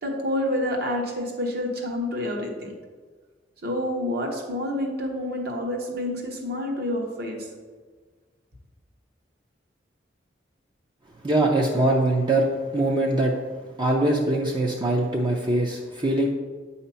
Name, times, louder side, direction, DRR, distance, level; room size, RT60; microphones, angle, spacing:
voice 1, 0.0-2.7 3.6-7.5, left 1 dB, 60° right, 1 dB, 1.2 m, -28 dB
voice 2, 11.2-12.5 12.7-13.4 13.8-16.3, right 2 dB, 25° right, -1 dB, 0.5 m, -22 dB
8.3 x 2.8 x 5.6 m, 1.4 s
head